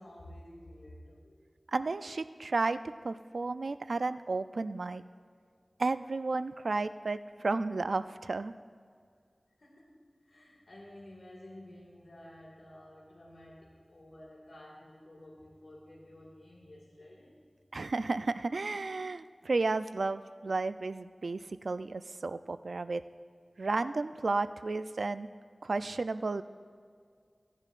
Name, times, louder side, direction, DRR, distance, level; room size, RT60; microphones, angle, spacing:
voice 1, 0.0-1.4 9.6-17.3, left 1 dB, 85° left, -5 dB, 2.1 m, -52 dB
voice 2, 1.7-2.8 3.0-5.0 5.8-8.5 17.7-23.0 23.6-25.3 25.6-26.4, right 3 dB, 90° right, 12 dB, 0.3 m, -32 dB
17.0 x 10.5 x 2.5 m, 2.1 s
wide cardioid pair, 45°, 0 cm